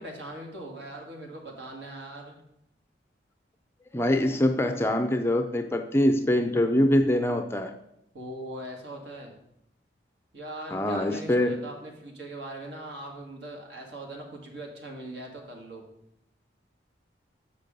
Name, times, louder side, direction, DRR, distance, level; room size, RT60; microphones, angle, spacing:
voice 1, 0.0-2.4 8.1-9.4 10.3-15.8, right 1 dB, 70° right, 1.8 m, -40 dB
voice 2, 3.9-7.7 10.7-11.6, left 1 dB, 15° left, 0.4 m, -24 dB
6.8 x 5.8 x 5.2 m
head